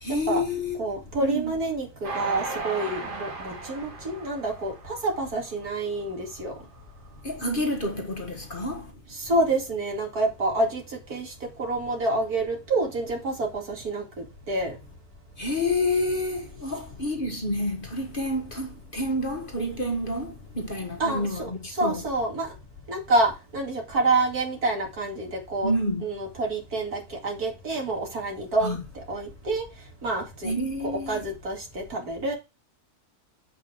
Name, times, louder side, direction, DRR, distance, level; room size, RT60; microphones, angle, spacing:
voice 1, 0.0-0.8 1.2-1.5 7.2-8.9 15.4-22.0 25.6-26.0 28.6-28.8 30.4-31.2, left 1 dB, 35° left, 1.6 m, -29 dB
voice 2, 0.8-6.5 9.1-14.8 21.0-22.5 22.9-25.7 26.0-28.8 29.1-29.6 30.0-30.5 30.8-32.3, right 2 dB, 65° right, 3.0 m, -28 dB
Train, 2.0-5.5 6.0-6.1 6.4-6.5, right 3 dB, 90° right, 3.3 m, -36 dB
8.2 x 5.4 x 4.6 m
omnidirectional pair, 1.7 m